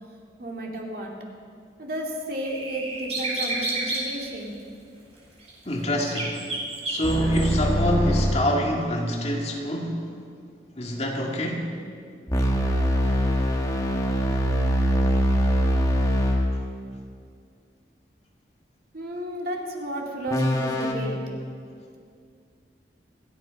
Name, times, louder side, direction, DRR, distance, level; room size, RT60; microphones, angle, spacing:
voice 1, 0.4-1.1 1.8-4.5 18.9-21.2, right 1 dB, 55° right, 0 dB, 2.6 m, -32 dB
sound 1, 2.4-4.1 5.5-5.6 6.0-7.5, right 2 dB, 35° right, 4.5 m, -30 dB
voice 2, 5.6-6.4 6.9-10.1 10.8-11.7, equal, 35° left, 0 dB, 2.1 m, -26 dB
sound 2, 7.0-8.5 12.3-16.5 20.3-20.9, equal, 20° left, 1.7 m, -23 dB
27.5 x 9.7 x 5.3 m, 2.2 s
head